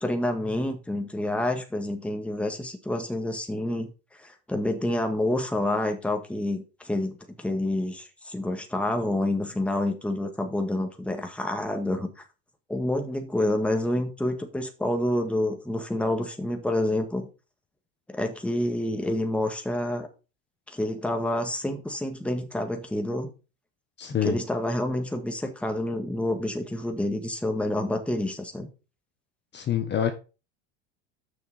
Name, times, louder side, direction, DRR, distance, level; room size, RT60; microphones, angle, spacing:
voice 1, 0.0-3.9 4.2-12.1 12.7-17.3 18.1-20.1 20.7-23.3 24.2-28.7, left 1 dB, 5° left, 1.7 m, -28 dB
voice 2, 24.0-24.4 29.5-30.1, left 9 dB, 30° left, 1.2 m, -26 dB
7.0 x 6.2 x 5.1 m
supercardioid pair, 105°, 34 cm